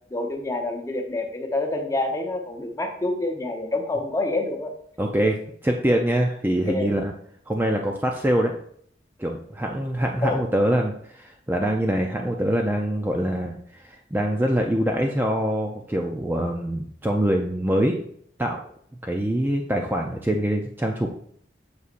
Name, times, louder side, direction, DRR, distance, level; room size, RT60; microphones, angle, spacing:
voice 1, 0.1-4.7 6.7-7.0 10.2-10.4, left 2 dB, 15° left, 3 dB, 0.9 m, -27 dB
voice 2, 5.0-7.1 7.5-8.5 9.2-18.0 18.4-18.6 19.0-21.1, right 1 dB, 10° right, 2 dB, 0.4 m, -24 dB
8.2 x 6.3 x 2.5 m, 0.63 s
head